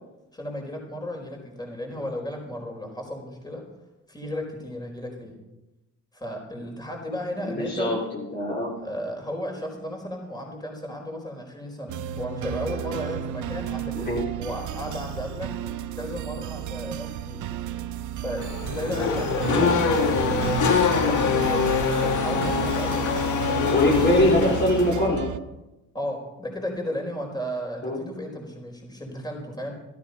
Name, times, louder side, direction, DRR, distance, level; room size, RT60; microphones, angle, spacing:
voice 1, 0.3-3.6 4.1-5.3 6.1-7.9 8.8-14.1 14.4-15.5 16.0-17.4 18.2-20.4 20.9-24.0 25.9-29.7, equal, 15° left, 1 dB, 4.6 m, -34 dB
voice 2, 7.4-8.7 13.9-14.2 19.5-19.7 23.6-25.3 27.8-28.0, left 1 dB, 35° left, -4 dB, 3.4 m, -23 dB
sound 1, 11.9-25.4, right 11 dB, 75° right, 0.8 m, -33 dB
Race car auto racing / Accelerating revving vroom, 18.4-25.1, left 6 dB, 75° left, 1.8 m, -24 dB
13.5 x 12.5 x 5.4 m, 0.99 s
cardioid pair, 90°, 30 cm